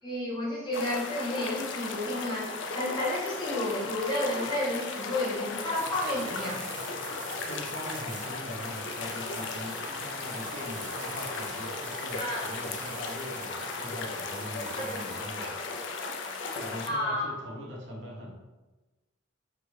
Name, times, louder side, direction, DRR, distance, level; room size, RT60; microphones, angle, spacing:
voice 1, 0.0-6.6 12.2-12.4 14.8-15.5 16.9-17.3, left 1 dB, 20° left, -7 dB, 1.1 m, -31 dB
sound 1, 0.7-16.9, left 4 dB, 65° left, 0.4 m, -36 dB
sound 2, 5.7-15.2, right 4 dB, 40° right, 0.5 m, -45 dB
voice 2, 7.4-15.6 16.5-18.4, equal, 60° right, -4 dB, 1.0 m, -42 dB
4.7 x 2.6 x 3.2 m, 1.1 s
head